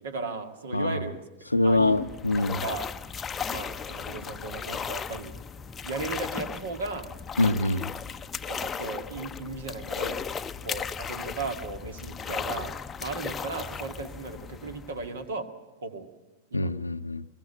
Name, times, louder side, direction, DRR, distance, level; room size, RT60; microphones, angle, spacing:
voice 1, 0.0-2.1 2.4-2.9 3.5-5.3 5.8-7.1 8.4-10.2 10.6-15.5 15.8-16.1 16.5-16.7, right 3 dB, 65° right, 7 dB, 2.0 m, -36 dB
voice 2, 1.5-2.6 7.4-7.9 16.5-17.2, left 2 dB, 85° left, 13 dB, 0.6 m, -24 dB
sound 1, 1.6-15.3, left 6 dB, 20° left, 0.6 m, -36 dB
21.5 x 20.0 x 7.9 m, 1.1 s
figure-of-eight pair, 90°, 0 cm